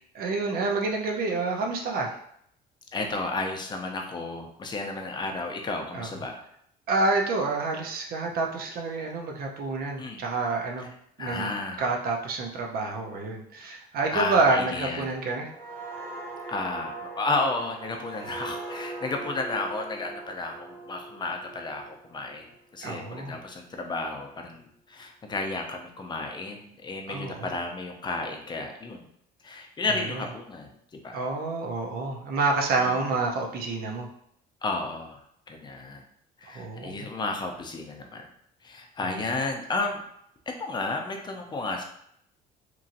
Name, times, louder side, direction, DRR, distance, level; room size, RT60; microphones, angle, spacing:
voice 1, 0.1-2.2 5.9-6.1 6.9-10.9 11.2-11.5 11.8-15.5 22.8-23.4 27.1-27.5 29.9-30.2 31.1-34.1 36.5-37.1 39.0-39.2, right 3 dB, 60° right, 2 dB, 0.6 m, -28 dB
voice 2, 2.9-6.4 10.0-10.2 11.2-11.8 14.1-15.1 16.5-22.5 22.7-29.1 29.4-31.2 32.8-33.0 34.6-35.2 35.5-36.0 36.4-38.3 38.6-40.0 40.6-41.8, left 3 dB, 25° left, 3 dB, 0.5 m, -32 dB
sound 1, 15.4-22.9 23.3-23.6, right 2 dB, 10° left, 1.3 m, -41 dB
3.0 x 2.6 x 2.5 m, 0.70 s
cardioid pair, 110°, 17 cm